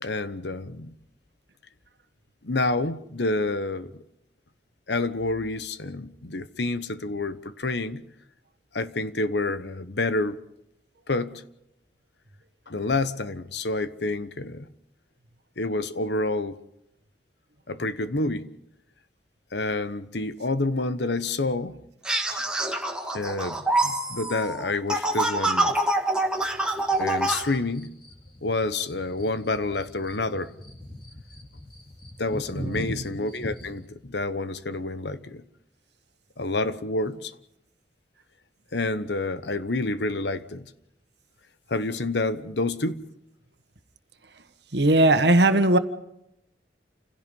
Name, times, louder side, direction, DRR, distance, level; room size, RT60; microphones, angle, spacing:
voice 1, 0.0-0.9 2.4-4.0 4.9-8.1 8.7-10.4 11.1-11.4 12.7-14.7 15.6-16.6 17.7-18.5 19.5-21.8 23.1-25.8 26.9-28.0 28.4-30.5 32.2-35.4 36.4-37.4 38.7-40.7 41.7-43.0, left 2 dB, 75° left, 1.1 m, -28 dB
sound 1, 22.0-27.4, right 2 dB, 5° right, 2.0 m, -25 dB
sound 2, 26.3-33.8, left 1 dB, 30° left, 3.7 m, -42 dB
voice 2, 32.6-33.1 44.7-45.8, right 2 dB, 70° right, 1.6 m, -19 dB
29.5 x 16.5 x 5.4 m
head